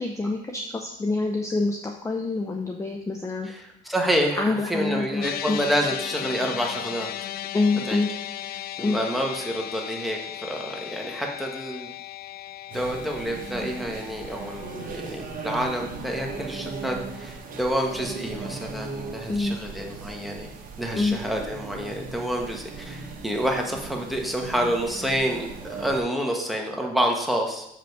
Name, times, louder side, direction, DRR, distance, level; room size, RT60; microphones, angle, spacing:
voice 1, 0.0-3.5 4.4-5.6 7.5-8.1 8.8-9.0 19.3-19.6 20.9-21.2, left 3 dB, 15° left, 3 dB, 0.6 m, -26 dB
voice 2, 3.4-7.3 7.9-8.0 8.8-11.9 12.7-20.5 20.8-27.7, equal, ahead, 1 dB, 1.3 m, -28 dB
sound 1, 5.2-17.6, left 12 dB, 65° left, 0.4 m, -37 dB
sound 2, 12.7-26.0, right 4 dB, 55° right, 1.2 m, -38 dB
6.7 x 5.1 x 4.7 m, 0.80 s
cardioid pair, 110°, 17 cm